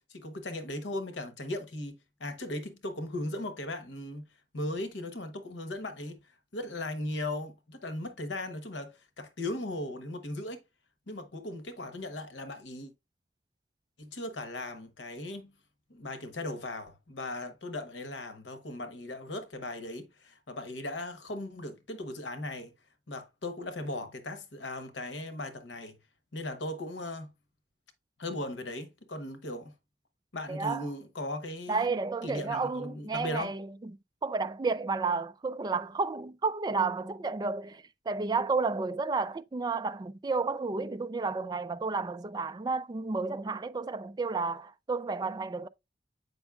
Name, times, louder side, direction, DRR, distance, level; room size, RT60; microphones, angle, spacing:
voice 1, 0.1-4.3 4.5-10.6 11.1-12.9 14.0-15.5 15.9-22.7 23.1-26.0 26.3-27.3 28.2-29.7 30.3-33.6, left 1 dB, 85° left, 1.0 m, -38 dB
voice 2, 30.5-30.8 31.7-33.7 34.2-45.7, right 4 dB, 25° right, 0.3 m, -31 dB
7.9 x 5.3 x 2.4 m
head